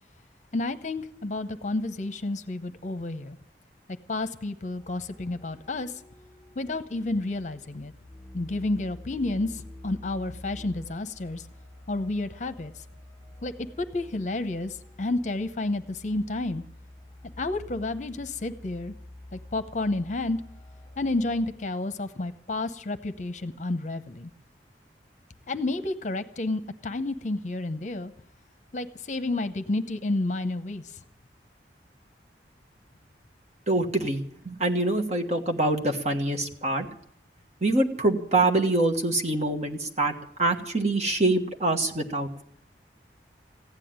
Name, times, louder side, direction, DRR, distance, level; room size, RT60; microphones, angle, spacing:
voice 1, 0.5-3.4 4.1-6.0 6.6-7.9 8.3-11.5 11.9-12.7 13.4-13.5 13.8-16.6 17.4-18.9 19.3-20.4 21.0-24.3 25.5-28.1 28.7-31.0, left 2 dB, 40° left, 11 dB, 0.8 m, -30 dB
sound 1, 4.8-21.5, left 1 dB, 10° left, 6.2 m, -48 dB
voice 2, 33.7-36.9 37.6-40.1 40.4-42.4, right 2 dB, 40° right, 4 dB, 1.4 m, -25 dB
15.5 x 9.9 x 8.8 m, 0.67 s
head